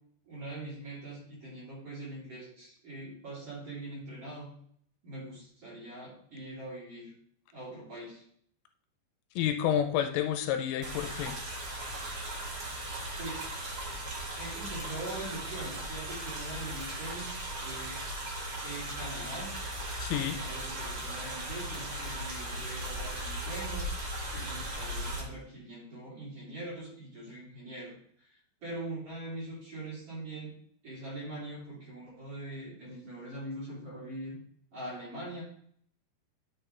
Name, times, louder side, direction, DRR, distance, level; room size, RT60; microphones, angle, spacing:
voice 1, 0.3-4.5 5.0-7.1 7.5-8.2 13.2-13.5 14.4-18.2 18.6-19.5 20.3-23.8 24.3-30.5 30.8-34.4 34.7-35.4, right 1 dB, 30° right, -7 dB, 3.8 m, -42 dB
voice 2, 9.4-11.4 20.0-20.4, left 10 dB, 80° left, 6 dB, 3.2 m, -29 dB
sound 1, 10.8-25.2, right 1 dB, 65° right, 1.3 m, -37 dB
11.0 x 7.1 x 3.3 m, 0.63 s
omnidirectional pair, 5.9 m